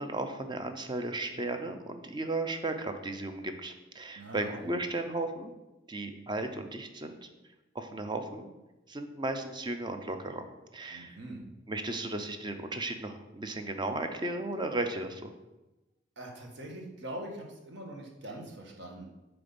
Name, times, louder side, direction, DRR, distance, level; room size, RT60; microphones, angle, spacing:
voice 1, 0.0-5.5 5.9-7.3 7.7-8.5 8.9-10.5 10.7-11.2 11.7-15.3, right 2 dB, 25° right, 7 dB, 0.6 m, -35 dB
voice 2, 4.2-4.7 10.9-11.4 16.2-19.1, right 1 dB, 65° right, 1 dB, 1.3 m, -43 dB
8.0 x 3.4 x 5.2 m, 1.0 s
head